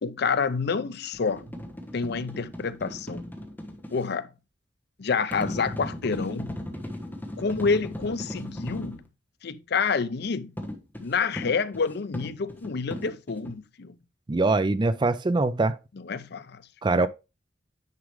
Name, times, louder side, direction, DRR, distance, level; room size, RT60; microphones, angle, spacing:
voice 1, 0.0-1.5 1.9-3.2 3.9-4.3 5.0-6.5 7.4-9.0 9.4-10.5 11.0-13.9 16.0-16.6 16.9-17.1, left 5 dB, 60° left, 0.6 m, -28 dB
sound 1, 1.1-4.0 5.3-9.0 10.6-13.5, left 1 dB, 10° left, 1.2 m, -37 dB
voice 2, 14.3-15.8 16.8-17.1, right 3 dB, 25° right, 0.4 m, -23 dB
9.6 x 5.0 x 3.2 m
head